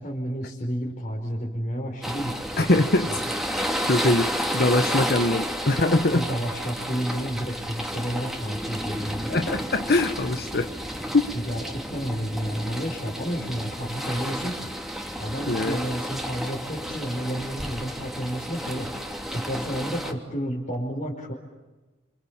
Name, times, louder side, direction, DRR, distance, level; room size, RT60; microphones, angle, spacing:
voice 1, 0.0-2.7 6.1-9.3 10.3-10.5 11.3-14.7 15.2-21.3, equal, 40° left, -2 dB, 5.0 m, -31 dB
sound 1, 2.0-20.1, equal, ahead, 3.1 m, -31 dB
voice 2, 2.6-3.2 3.5-6.3 9.3-10.7 11.1-11.3 15.5-15.8, left 2 dB, 55° left, 7 dB, 1.2 m, -23 dB
29.5 x 27.5 x 7.4 m, 1.2 s
head